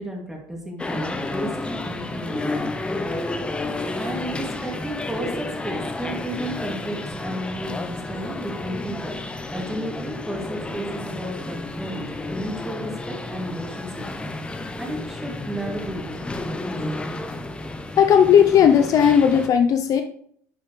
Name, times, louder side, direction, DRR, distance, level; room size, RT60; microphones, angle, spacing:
voice 1, 0.0-2.5 3.9-9.2 9.5-14.3 14.6-16.3, right 1 dB, 5° right, -1 dB, 2.7 m, -33 dB
sound 1, 0.8-19.5, left 2 dB, 15° left, 0.8 m, -31 dB
voice 2, 18.0-20.0, left 8 dB, 50° left, 7 dB, 0.7 m, -16 dB
11.5 x 5.5 x 3.3 m, 0.65 s
supercardioid pair, 115°, 8 cm